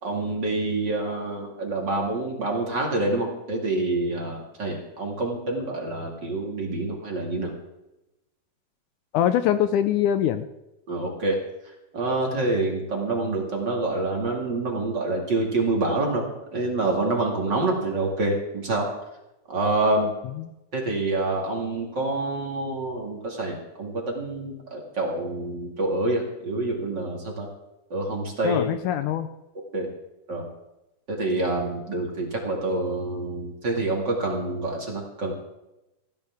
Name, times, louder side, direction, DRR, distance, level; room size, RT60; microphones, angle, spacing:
voice 1, 0.0-7.5 10.9-11.4 11.9-16.3 16.5-18.9 19.5-20.1 20.7-27.5 27.9-28.7 29.7-29.9 30.3-30.4 31.1-35.3, right 2 dB, 35° right, 0 dB, 2.6 m, -27 dB
voice 2, 9.1-10.5 20.3-20.5 28.4-29.3, left 10 dB, 80° left, 10 dB, 2.0 m, -23 dB
17.5 x 16.0 x 3.6 m, 0.95 s
omnidirectional pair, 3.8 m